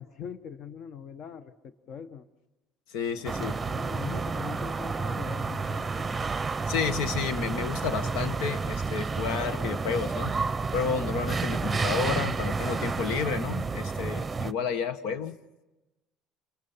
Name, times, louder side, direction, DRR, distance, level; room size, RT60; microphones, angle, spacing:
voice 1, 0.0-2.3 3.2-6.1, left 7 dB, 50° left, 11 dB, 1.3 m, -42 dB
voice 2, 2.9-3.6 6.7-10.3 10.7-15.3, left 6 dB, 85° left, 10 dB, 1.6 m, -31 dB
sound 1, 3.2-14.5, right 4 dB, 15° right, 0.8 m, -30 dB
28.5 x 23.0 x 5.8 m, 1.0 s
cardioid pair, 135°, 0 cm